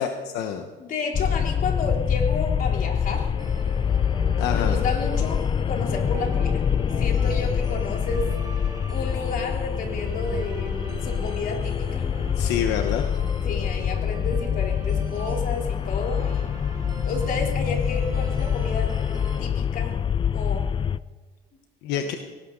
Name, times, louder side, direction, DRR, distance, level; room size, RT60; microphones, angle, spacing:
voice 1, 0.0-0.7 4.4-4.8 12.4-13.1 21.8-22.1, left 9 dB, 85° left, 5 dB, 1.2 m, -27 dB
voice 2, 0.8-3.3 4.5-5.4 5.7-6.6 7.0-8.3 8.9-12.0 13.4-16.6 17.1-18.9 19.4-20.0 20.3-20.7 21.9-22.2, left 3 dB, 55° left, 1 dB, 3.6 m, -31 dB
sound 1, 1.1-21.0, left 8 dB, 30° left, 0.4 m, -25 dB
sound 2, 3.4-19.4, right 3 dB, 25° right, 3.0 m, -42 dB
19.0 x 18.0 x 4.0 m, 1.3 s
cardioid pair, 110°, 17 cm